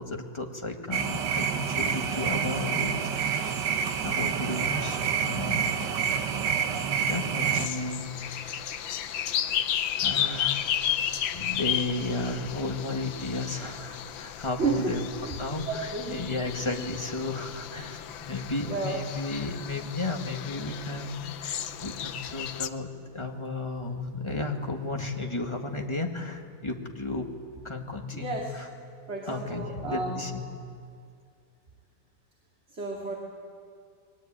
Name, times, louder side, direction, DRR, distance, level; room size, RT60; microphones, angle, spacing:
voice 1, 0.0-3.5 4.0-5.7 7.0-9.5 10.0-10.8 11.3-27.3 27.6-28.7 29.3-30.4, left 2 dB, 15° left, 2 dB, 2.0 m, -34 dB
sound 1, 0.9-7.7, right 7 dB, 65° right, 1.7 m, -28 dB
sound 2, 7.5-22.7, left 10 dB, 85° left, 1.7 m, -33 dB
voice 2, 14.6-15.4 15.6-16.2 18.6-19.0 28.1-28.5 29.1-30.3 32.7-33.1, right 4 dB, 35° right, -1 dB, 2.9 m, -32 dB
30.0 x 21.5 x 9.0 m, 2.3 s
omnidirectional pair, 2.1 m